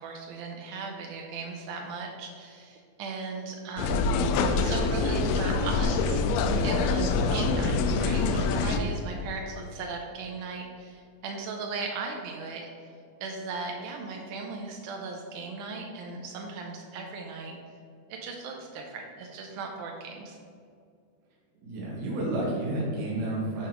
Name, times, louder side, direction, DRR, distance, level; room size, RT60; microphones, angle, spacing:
voice 1, 0.0-6.2 6.6-12.7 13.2-17.5 18.1-20.4, right 4 dB, 90° right, 1 dB, 1.8 m, -37 dB
sound 1, 3.8-8.8, left 4 dB, 85° left, 1.9 m, -25 dB
voice 2, 21.6-23.7, right 1 dB, 55° right, -5 dB, 2.2 m, -30 dB
8.9 x 4.8 x 3.0 m, 2.3 s
omnidirectional pair, 4.3 m